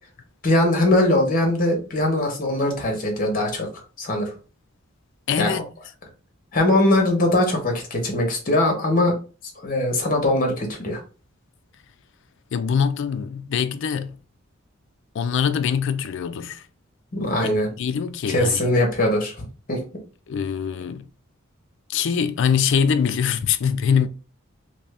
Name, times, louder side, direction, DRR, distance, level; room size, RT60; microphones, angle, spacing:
voice 1, 0.4-3.7 4.0-4.3 5.4-5.5 6.5-9.1 9.6-11.0 17.1-17.7 18.3-19.8, left 1 dB, 40° left, 1.0 m, -21 dB
voice 2, 5.3-5.7 12.5-14.2 15.1-16.6 17.4-18.7 20.3-21.1 21.9-24.1, left 7 dB, 60° left, 0.3 m, -23 dB
2.7 x 2.6 x 3.3 m
head